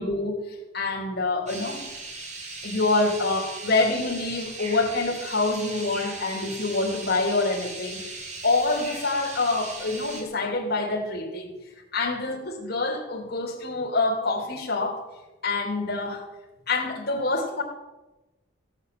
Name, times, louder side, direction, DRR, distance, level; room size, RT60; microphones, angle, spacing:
voice 1, 0.0-1.8 2.6-11.5 11.9-15.0 15.4-16.3 16.7-17.6, left 3 dB, 55° left, 0 dB, 3.4 m, -26 dB
sound 1, 1.5-10.2, right 3 dB, 35° right, 2.9 m, -38 dB
16.0 x 8.3 x 7.9 m, 1.1 s
head